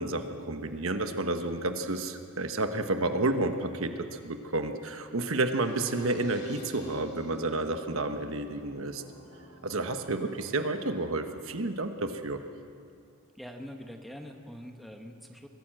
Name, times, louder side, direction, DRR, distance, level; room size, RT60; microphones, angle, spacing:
voice 1, 0.0-9.0 9.6-12.4, right 2 dB, 65° right, 7 dB, 1.2 m, -30 dB
sound 1, 5.3-11.3, right 1 dB, 50° left, 2.8 m, -48 dB
voice 2, 13.3-15.5, equal, ahead, 3 dB, 1.2 m, -44 dB
23.0 x 15.0 x 7.7 m, 2.3 s
head